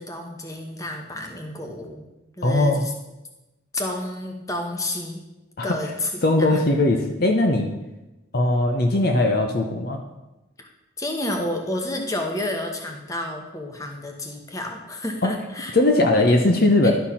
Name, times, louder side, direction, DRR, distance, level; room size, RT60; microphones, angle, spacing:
voice 1, 0.0-2.1 2.4-2.9 3.7-5.2 5.6-6.6 10.6-10.7 11.0-15.7 16.8-16.9, left 1 dB, 15° left, 3 dB, 1.0 m, -30 dB
voice 2, 2.4-2.8 5.6-5.7 6.2-7.7 8.3-10.0 15.2-15.3 15.7-16.9, left 2 dB, 50° left, 3 dB, 0.8 m, -19 dB
11.5 x 4.5 x 5.6 m, 1.0 s
head